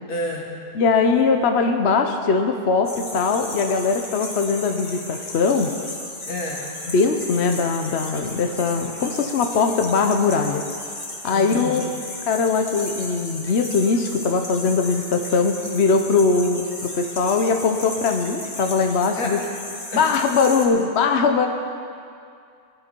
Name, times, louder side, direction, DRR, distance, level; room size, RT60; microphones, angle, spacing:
voice 1, 0.1-0.5 6.2-6.7 11.3-11.8 19.1-19.4 19.9-20.1, left 1 dB, 80° left, -1 dB, 2.5 m, -29 dB
voice 2, 0.7-5.7 6.9-10.6 11.2-11.8 12.3-19.4 20.0-21.5, left 4 dB, 50° left, 5 dB, 1.0 m, -21 dB
sound 1, 2.8-20.6, left 1 dB, 30° left, 2.0 m, -35 dB
19.5 x 11.0 x 4.5 m, 2.3 s
omnidirectional pair, 1.6 m